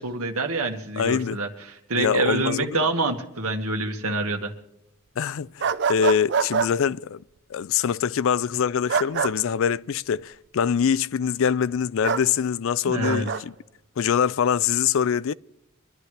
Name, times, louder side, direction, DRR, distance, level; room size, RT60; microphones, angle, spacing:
voice 1, 0.0-4.5 12.9-13.3, right 2 dB, 80° right, 1.9 m, -26 dB
voice 2, 1.0-1.4 2.0-2.8 5.2-7.2 7.5-13.5 14.0-15.3, left 7 dB, 65° left, 0.4 m, -24 dB
sound 1, 5.6-6.7 8.9-9.3 12.0-12.3 13.0-13.4, right 6 dB, 50° right, 0.6 m, -24 dB
24.5 x 11.5 x 3.3 m
head